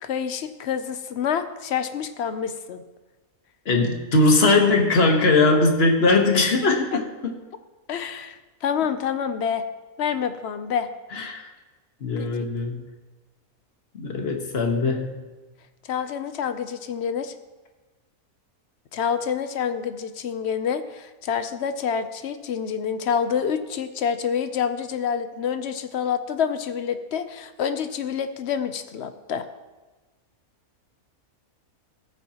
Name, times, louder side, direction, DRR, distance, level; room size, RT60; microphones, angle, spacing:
voice 1, 0.0-2.8 7.9-9.6 10.0-10.9 12.2-12.5 15.9-17.3 18.9-29.4, left 7 dB, 60° left, 10 dB, 0.7 m, -27 dB
voice 2, 3.6-7.3 11.1-11.5 12.0-12.9 13.9-15.2, left 3 dB, 45° left, 3 dB, 1.4 m, -20 dB
14.0 x 9.0 x 2.9 m, 1.2 s
omnidirectional pair, 1.6 m